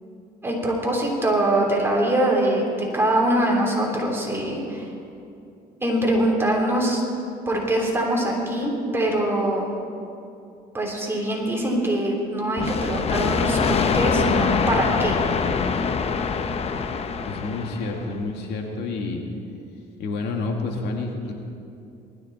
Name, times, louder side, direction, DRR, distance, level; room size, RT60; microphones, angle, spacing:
voice 1, 0.4-4.9 5.8-7.0 7.5-9.7 10.7-15.2, right 1 dB, 15° right, -2 dB, 3.4 m, -23 dB
sound 1, 12.6-18.1, left 5 dB, 35° left, 0.8 m, -24 dB
voice 2, 17.2-19.2 20.0-21.3, left 3 dB, 75° left, 1 dB, 2.1 m, -29 dB
19.5 x 13.5 x 4.1 m, 2.6 s
cardioid pair, 110°, 17 cm